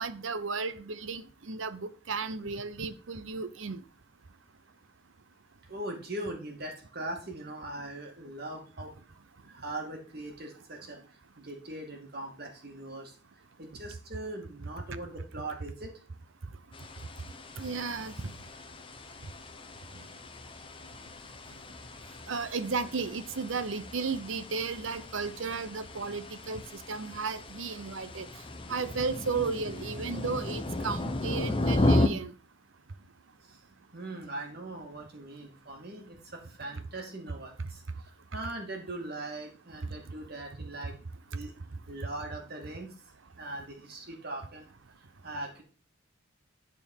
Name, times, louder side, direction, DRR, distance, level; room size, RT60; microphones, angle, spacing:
voice 1, 0.0-3.8 17.6-18.3 20.0-20.1 22.3-26.6 26.9-28.3 28.7-32.3, right 4 dB, 70° right, 0.8 m, -34 dB
voice 2, 5.7-8.9 9.5-11.0 11.4-13.1 13.6-15.9 33.9-37.8 38.3-40.9 41.3-41.5 41.9-42.9 43.4-44.6 45.2-45.6, right 2 dB, 50° right, 2.3 m, -40 dB
sound 1, 16.7-32.1, left 1 dB, 25° left, 0.8 m, -34 dB
11.0 x 4.5 x 5.5 m
head